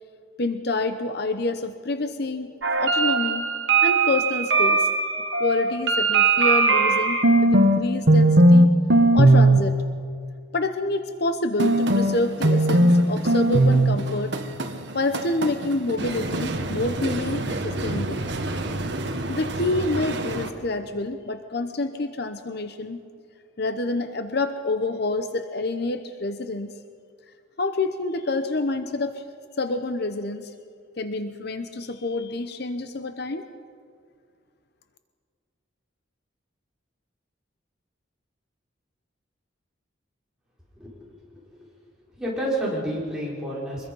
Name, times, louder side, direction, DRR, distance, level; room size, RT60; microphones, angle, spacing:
voice 1, 0.4-3.5 3.8-4.9 5.4-8.7 9.1-9.7 10.5-14.4 14.9-18.3 19.3-23.0 23.6-26.7 27.6-29.2 29.6-30.5 31.0-33.5, left 2 dB, 55° left, 8 dB, 0.9 m, -27 dB
sound 1, 2.6-7.8 8.1-8.7 8.9-9.6 11.6-20.5, right 2 dB, 60° right, 1.5 m, -20 dB
voice 2, 42.2-43.9, right 1 dB, 5° right, -7 dB, 5.2 m, -29 dB
24.0 x 21.0 x 5.5 m, 2.2 s
head